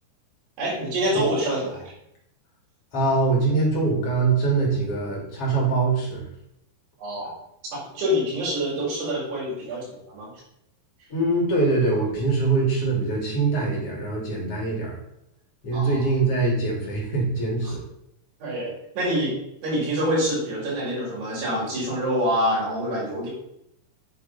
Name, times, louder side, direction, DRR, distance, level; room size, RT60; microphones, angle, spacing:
voice 1, 0.6-1.9 7.0-7.3 7.7-10.3 15.7-16.0 18.4-23.3, equal, 75° right, -7 dB, 6.2 m, -26 dB
voice 2, 2.9-6.2 11.1-15.0 15.6-17.8, right 3 dB, 40° left, -3 dB, 3.2 m, -23 dB
9.7 x 6.6 x 4.2 m, 0.78 s
omnidirectional pair, 4.7 m